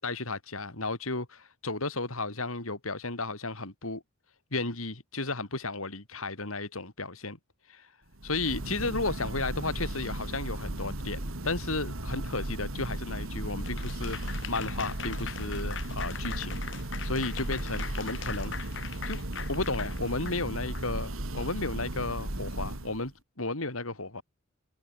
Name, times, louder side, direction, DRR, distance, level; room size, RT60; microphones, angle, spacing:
voice 1, 0.0-4.0 4.5-7.4 7.7-7.9 8.2-16.6 17.0-18.8 19.0-19.2 19.5-24.2, left 3 dB, 80° left, 4.1 m, -34 dB
Church bell, 8.1-23.1, right 1 dB, 80° right, 2.7 m, -35 dB
Applause / Crowd, 13.6-20.9, left 7 dB, 55° left, 1.2 m, -41 dB
head